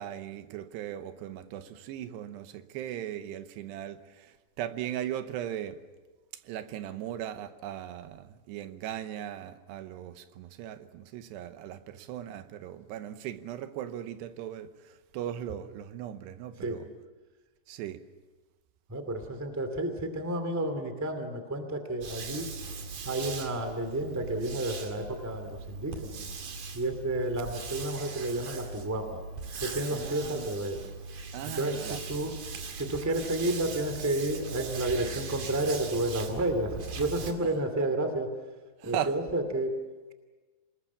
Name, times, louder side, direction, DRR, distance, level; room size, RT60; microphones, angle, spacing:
voice 1, 0.0-5.8 6.4-16.9 17.7-18.0 29.9-30.6 31.3-32.0 37.4-37.6 38.8-39.2, right 11 dB, 85° right, 3.1 m, -38 dB
voice 2, 18.9-22.5 23.0-26.2 26.7-29.2 29.6-30.8 31.4-32.3 32.7-38.3 38.8-39.7, right 1 dB, 5° right, 1.4 m, -31 dB
sound 1, 22.0-37.3, right 4 dB, 50° right, 3.5 m, -40 dB
27.0 x 20.5 x 7.3 m
omnidirectional pair, 4.8 m